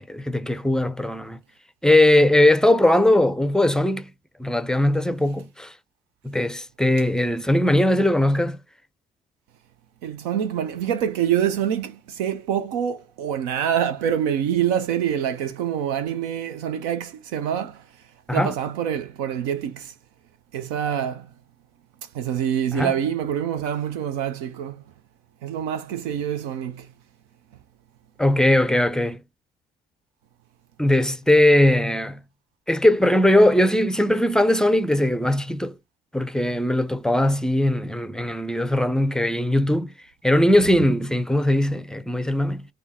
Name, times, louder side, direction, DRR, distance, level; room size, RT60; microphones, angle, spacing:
voice 1, 0.0-1.4 1.8-4.1 4.4-5.7 6.2-8.6 18.3-18.5 22.7-22.9 28.2-29.2 30.8-32.2 32.7-35.7 36.1-39.9 40.2-42.7, left 1 dB, 5° left, 0.5 m, -20 dB
voice 2, 10.0-17.8 18.3-19.9 20.5-21.3 22.1-24.8 25.4-26.9, right 9 dB, 80° right, 0.5 m, -26 dB
3.5 x 3.3 x 2.8 m
hypercardioid pair, 55°, 21 cm